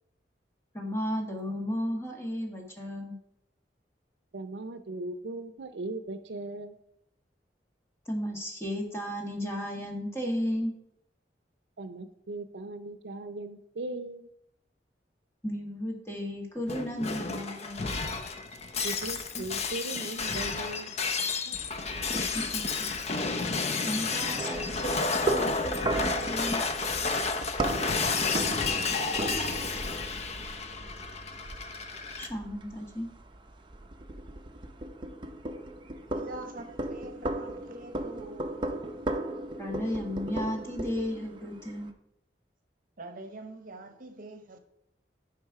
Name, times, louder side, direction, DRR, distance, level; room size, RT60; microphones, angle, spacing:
voice 1, 0.7-3.2 8.1-10.7 15.4-17.8 22.1-22.9 23.8-26.6 32.2-33.1 39.6-41.9, equal, 15° left, 1.5 m, -34 dB
voice 2, 4.3-6.8 11.8-14.3 18.8-21.0 21.4-22.0, right 2 dB, 80° right, 0.5 m, -39 dB
Shatter, 16.7-32.3, left 4 dB, 35° left, 0.6 m, -31 dB
sound 1, 24.4-41.9, right 2 dB, 30° right, 0.6 m, -36 dB
voice 3, 36.1-38.7 43.0-44.6, right 2 dB, 50° right, 0.9 m, -44 dB
9.6 x 5.0 x 4.7 m
head